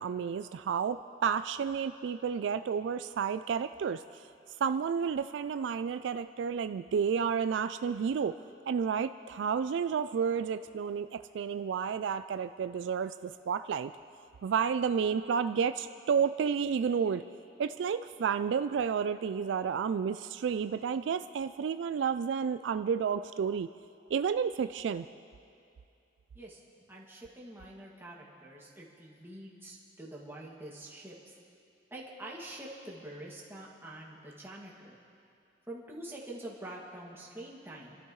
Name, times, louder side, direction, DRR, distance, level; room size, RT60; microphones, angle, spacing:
voice 1, 0.0-4.3 4.6-8.4 8.7-13.9 14.4-17.2 17.6-23.7 24.1-25.1, right 6 dB, 70° right, 11 dB, 0.3 m, -31 dB
voice 2, 26.9-31.3 31.9-35.0 35.7-38.0, right 1 dB, 15° right, -4 dB, 2.2 m, -46 dB
28.5 x 12.5 x 3.2 m, 2.5 s
head